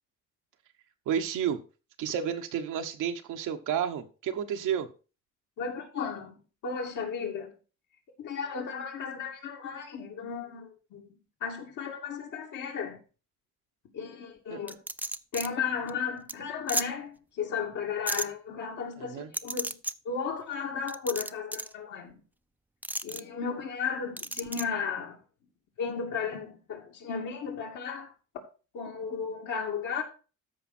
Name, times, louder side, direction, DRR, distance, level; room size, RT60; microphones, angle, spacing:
voice 1, 1.1-1.6 2.0-4.9 14.5-14.6 19.0-19.3, right 8 dB, 85° right, 1.2 m, -31 dB
voice 2, 5.6-7.5 8.2-11.1 11.4-13.0 13.9-14.8 15.3-19.8 20.0-22.2 23.0-25.2 25.8-28.1 28.7-30.0, left 6 dB, 80° left, 2.7 m, -34 dB
sound 1, 14.7-15.5 15.9-16.0 16.3-16.4 16.7-16.9 18.1-18.3 19.3-19.9 20.9-21.7 22.8-23.2 24.2-24.6, right 1 dB, 5° right, 0.4 m, -33 dB
13.5 x 5.2 x 4.3 m
cardioid pair, 90°, 30 cm